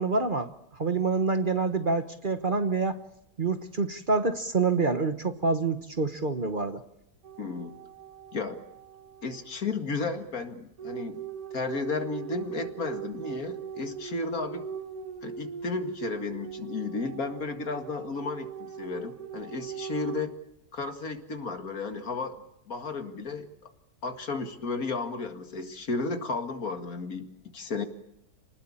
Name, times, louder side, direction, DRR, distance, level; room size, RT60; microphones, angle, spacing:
voice 1, 0.0-3.0 3.4-6.8, right 4 dB, 35° right, 9 dB, 1.1 m, -27 dB
sound 1, 7.2-9.6 10.8-20.3, right 7 dB, 70° right, 2.1 m, -40 dB
voice 2, 7.4-7.7 8.3-8.6 9.2-11.2 11.5-14.7 15.2-20.3 20.7-22.4 22.7-23.5 24.0-27.3 27.5-27.9, left 4 dB, 70° left, 6 dB, 2.4 m, -33 dB
28.0 x 19.5 x 8.7 m, 0.81 s
omnidirectional pair, 1.6 m